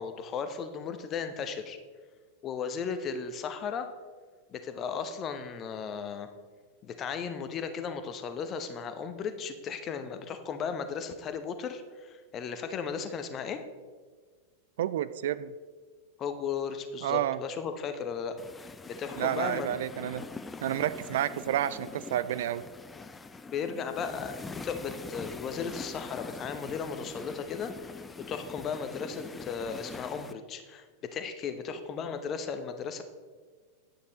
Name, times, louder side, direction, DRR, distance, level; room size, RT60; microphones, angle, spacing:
voice 1, 0.0-1.8 2.4-3.9 4.5-6.3 6.8-13.6 16.2-19.7 23.5-30.9 31.1-33.0, left 6 dB, 30° left, 9 dB, 0.9 m, -36 dB
voice 2, 14.8-15.5 17.0-17.4 19.2-20.2 20.6-22.6, right 12 dB, 55° right, 15 dB, 0.3 m, -30 dB
sound 1, 18.4-30.3, left 4 dB, 15° left, 0.5 m, -43 dB
9.8 x 8.5 x 4.0 m, 1.5 s
figure-of-eight pair, 90°, 0 cm